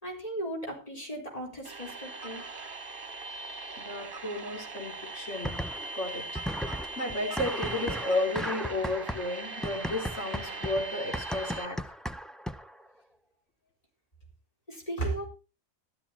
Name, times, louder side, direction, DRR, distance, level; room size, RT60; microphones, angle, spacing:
voice 1, 0.0-2.4 14.7-15.3, right 2 dB, 30° left, 0 dB, 4.7 m, -36 dB
sound 1, 1.6-11.7, right 3 dB, 45° right, 1.3 m, -40 dB
voice 2, 3.8-5.6 5.9-11.9, left 2 dB, 70° left, 1 dB, 3.6 m, -33 dB
sound 2, 5.4-6.0 6.4-12.8, equal, ahead, 0.4 m, -36 dB
13.0 x 12.5 x 4.3 m, 0.31 s
omnidirectional pair, 1.2 m